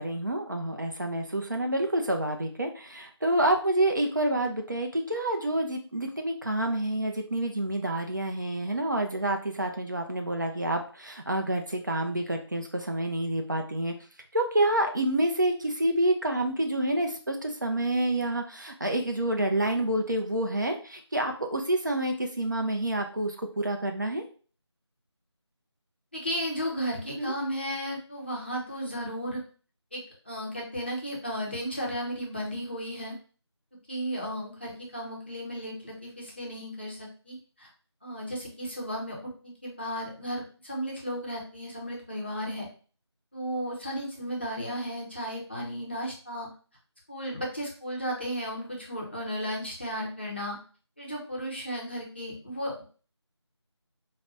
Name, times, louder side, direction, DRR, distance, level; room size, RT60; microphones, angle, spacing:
voice 1, 0.0-13.9 14.3-24.2 27.2-27.3, right 1 dB, 45° right, 3 dB, 0.5 m, -28 dB
voice 2, 26.1-29.4 29.9-33.1 33.9-37.7 38.0-39.2 39.4-42.7 43.3-46.5 47.1-50.6 51.0-52.9, equal, 25° left, -3 dB, 0.6 m, -34 dB
4.9 x 2.1 x 2.6 m, 0.39 s
figure-of-eight pair, 165°, 15 cm